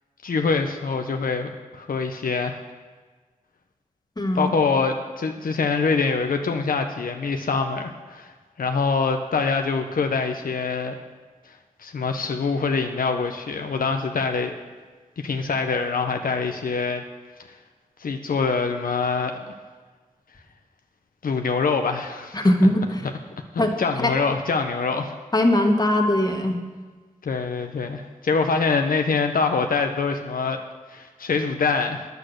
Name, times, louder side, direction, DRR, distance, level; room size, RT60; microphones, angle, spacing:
voice 1, 0.2-2.6 4.3-8.3 8.6-11.0 11.8-14.5 15.2-17.0 18.0-19.5 21.2-22.5 23.5-25.1 27.2-30.6 30.9-32.1, left 4 dB, 85° left, 5 dB, 0.7 m, -24 dB
voice 2, 4.2-4.5 22.3-23.1 23.6-24.1 25.3-26.6, left 1 dB, 30° left, 3 dB, 1.5 m, -20 dB
9.8 x 8.1 x 6.4 m, 1.4 s
cardioid pair, 55°, 14 cm